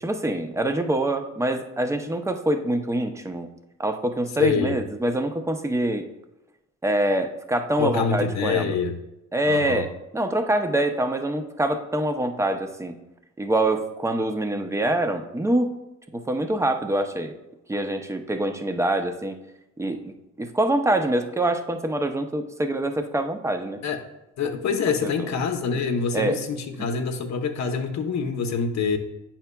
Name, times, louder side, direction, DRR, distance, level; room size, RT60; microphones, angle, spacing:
voice 1, 0.0-3.5 3.8-6.0 6.8-8.7 9.3-9.9 10.1-13.0 13.4-15.7 16.1-17.3 17.7-19.4 19.8-23.8 25.0-25.3 26.1-26.4 26.8-26.9, right 1 dB, 10° right, 7 dB, 0.5 m, -25 dB
voice 2, 4.4-4.8 7.8-9.0 9.5-9.9 23.8-24.0 24.4-29.0, left 5 dB, 65° left, 5 dB, 0.7 m, -25 dB
8.0 x 5.7 x 2.2 m, 0.91 s
cardioid pair, 90°, 30 cm